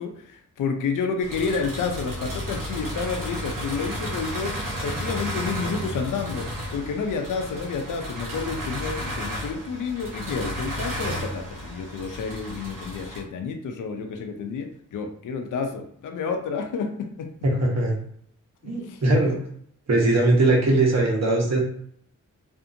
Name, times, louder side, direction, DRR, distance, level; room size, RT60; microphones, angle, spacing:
voice 1, 0.0-17.3 18.6-19.0, left 5 dB, 70° left, 5 dB, 0.5 m, -30 dB
sound 1, 1.2-13.2, equal, 90° right, 0.8 m, -33 dB
voice 2, 17.4-17.9 18.6-19.4 19.9-21.6, right 2 dB, 55° right, -1 dB, 1.0 m, -20 dB
2.5 x 2.4 x 2.6 m, 0.65 s
cardioid pair, 50°, 32 cm